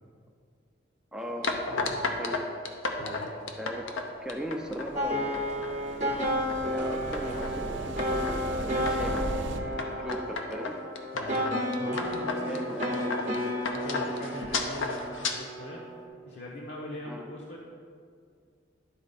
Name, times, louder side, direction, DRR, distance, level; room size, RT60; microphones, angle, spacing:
voice 1, 1.1-1.5 2.2-2.4 3.6-3.8 4.2-5.8 6.7-10.8 12.4-13.1 17.1-17.3, equal, 5° right, 1 dB, 0.5 m, -38 dB
sound 1, 1.4-4.9 5.3-5.7 6.1-6.6 7.1-7.6 8.0-8.4 8.9-9.3 9.8-15.3, left 3 dB, 90° left, 0.7 m, -33 dB
voice 2, 1.7-2.0 3.0-3.3 9.8-10.1 11.1-11.4 11.8-15.8 16.2-17.7, left 1 dB, 60° left, -3 dB, 0.9 m, -41 dB
sound 2, 4.3-9.6, right 1 dB, 75° right, 0.6 m, -38 dB
sound 3, 5.0-16.1, equal, 40° right, 0.8 m, -32 dB
11.5 x 4.3 x 4.1 m, 2.2 s
head